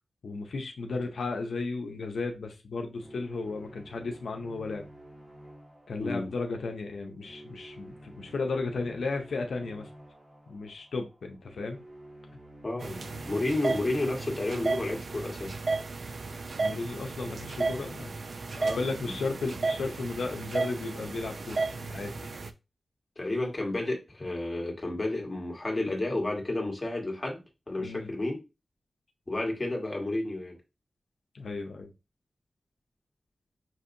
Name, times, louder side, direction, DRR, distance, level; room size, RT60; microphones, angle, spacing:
voice 1, 0.2-4.8 5.9-9.9 10.5-11.8 16.6-18.1 18.5-22.4 27.8-28.1 31.3-31.9, left 3 dB, 85° left, 0.6 m, -34 dB
sound 1, 2.9-16.0, right 1 dB, 30° right, 1.5 m, -51 dB
voice 2, 6.0-6.3 12.6-15.6 18.6-19.1 23.2-28.4 29.3-30.6, left 2 dB, 25° left, 1.5 m, -31 dB
sound 2, 12.8-22.5, right 3 dB, 65° right, 0.4 m, -34 dB
5.8 x 2.7 x 2.6 m
wide cardioid pair, 80°, 0 cm